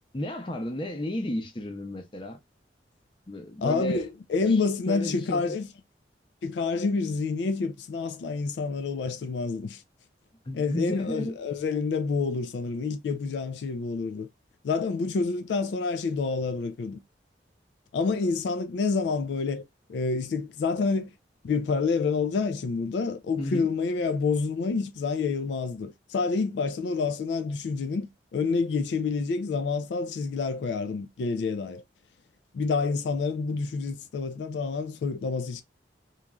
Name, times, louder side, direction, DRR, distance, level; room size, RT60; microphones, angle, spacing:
voice 1, 0.1-2.4 3.3-4.1 4.9-5.6 10.5-11.3 23.4-23.7, left 1 dB, 30° left, 0.6 m, -33 dB
voice 2, 3.6-5.7 6.4-9.8 10.5-14.3 14.6-17.0 17.9-21.1 21.4-31.8 32.5-35.6, left 4 dB, 75° left, 0.3 m, -28 dB
3.0 x 2.3 x 2.2 m
head